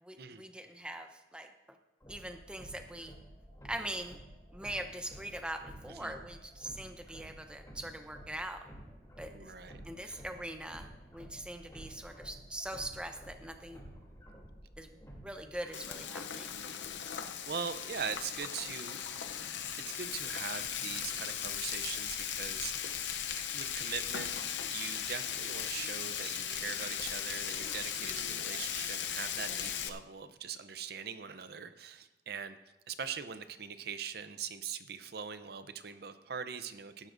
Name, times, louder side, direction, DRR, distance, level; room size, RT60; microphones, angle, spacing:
voice 1, 0.0-1.5 2.1-3.1 3.6-4.2 4.5-8.6 9.2-9.5 9.8-13.8 14.8-16.6, right 1 dB, 5° right, 6 dB, 0.7 m, -42 dB
sound 1, 2.0-15.7, equal, 20° left, 2.9 m, -52 dB
voice 2, 9.3-10.2 17.0-17.1 17.5-19.0 19.8-23.0 23.5-24.3 24.7-32.6 32.9-37.1, right 6 dB, 60° right, 10 dB, 0.6 m, -42 dB
Frying (food), 15.7-29.9, left 9 dB, 80° left, 0.6 m, -37 dB
17.0 x 12.0 x 2.6 m, 0.98 s
head